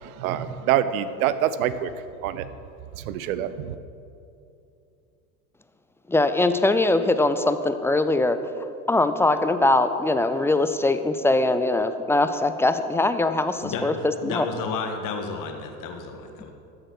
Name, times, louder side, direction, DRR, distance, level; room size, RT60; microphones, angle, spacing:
voice 1, 0.0-1.9 2.2-2.5 3.0-3.8, right 11 dB, 70° right, 14 dB, 0.8 m, -26 dB
voice 2, 6.1-8.4 8.9-14.5, left 2 dB, 5° left, 10 dB, 0.4 m, -22 dB
voice 3, 14.2-16.5, left 5 dB, 45° left, 4 dB, 1.7 m, -32 dB
13.0 x 7.8 x 6.0 m, 2.6 s
hypercardioid pair, 90°, 44 cm